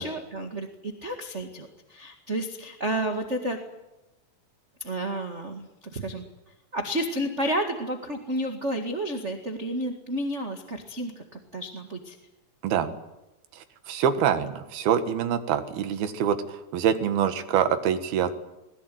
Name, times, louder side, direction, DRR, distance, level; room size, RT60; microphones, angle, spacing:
voice 1, 0.0-3.6 4.8-6.2 6.7-12.2, right 1 dB, 30° right, 5 dB, 1.4 m, -31 dB
voice 2, 12.6-13.0 13.6-18.3, right 8 dB, 85° right, 9 dB, 3.5 m, -25 dB
21.5 x 20.5 x 9.4 m, 0.97 s
omnidirectional pair, 4.3 m